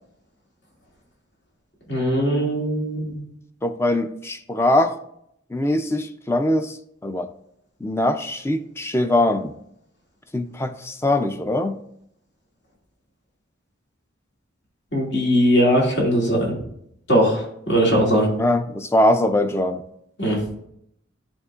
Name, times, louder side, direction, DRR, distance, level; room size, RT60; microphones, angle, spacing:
voice 1, 1.9-3.2 14.9-16.5 17.1-18.3 20.2-20.4, equal, 65° left, 2.1 m, -20 dB
voice 2, 3.6-5.0 5.5-6.8 7.0-7.3 7.8-9.5 10.3-11.7 18.4-19.8, left 1 dB, 15° left, 0.3 m, -22 dB
11.0 x 3.7 x 2.4 m
head